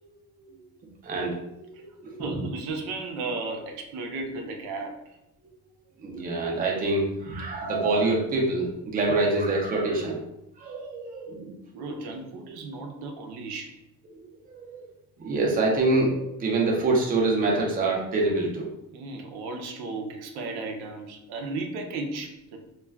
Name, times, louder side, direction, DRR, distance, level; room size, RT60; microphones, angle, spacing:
voice 1, 1.0-2.2 4.1-4.2 6.0-10.2 10.6-11.5 14.1-14.2 14.5-14.9 15.2-18.7, right 2 dB, 25° right, -2 dB, 0.5 m, -26 dB
voice 2, 2.2-5.0 11.7-13.8 18.9-22.6, right 3 dB, 85° right, 3 dB, 0.6 m, -34 dB
2.3 x 2.2 x 3.3 m, 0.84 s
cardioid pair, 150°, 38 cm